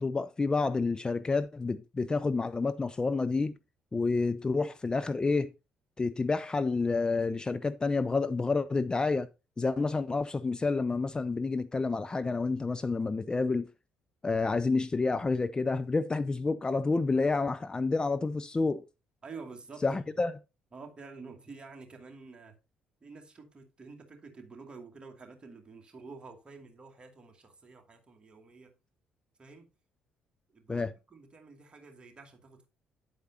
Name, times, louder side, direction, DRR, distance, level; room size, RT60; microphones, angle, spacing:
voice 1, 0.0-3.5 3.9-5.5 6.0-9.3 9.6-13.7 14.2-18.8 19.8-20.3 30.7-30.9, left 3 dB, 20° left, 0.5 m, -29 dB
voice 2, 19.2-20.0 20.7-22.6 23.0-28.7 29.4-29.7 30.5-32.7, right 4 dB, 25° right, 2.4 m, -49 dB
9.5 x 8.0 x 2.8 m
figure-of-eight pair, 45°, 4 cm